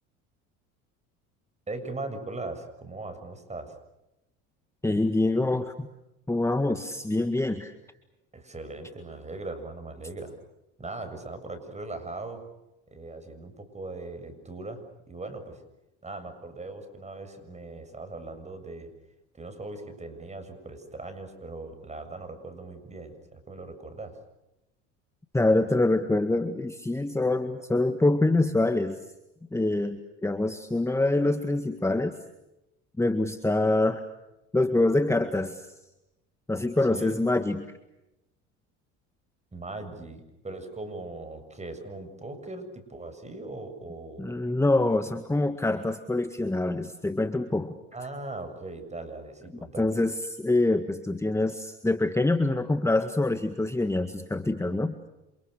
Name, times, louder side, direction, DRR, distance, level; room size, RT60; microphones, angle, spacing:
voice 1, 1.7-3.8 8.3-10.4 10.8-12.4 12.9-15.6 16.0-18.9 19.3-24.2 36.9-37.2 39.5-44.3 47.9-49.9, right 2 dB, 20° right, 8 dB, 7.3 m, -39 dB
voice 2, 4.8-5.9 6.3-7.7 25.3-29.0 29.5-32.2 33.0-34.1 34.5-35.7 36.5-37.6 44.2-47.8 49.8-55.0, left 2 dB, 10° left, 8 dB, 1.8 m, -25 dB
29.0 x 27.5 x 6.7 m, 0.92 s
supercardioid pair, 90°, 33 cm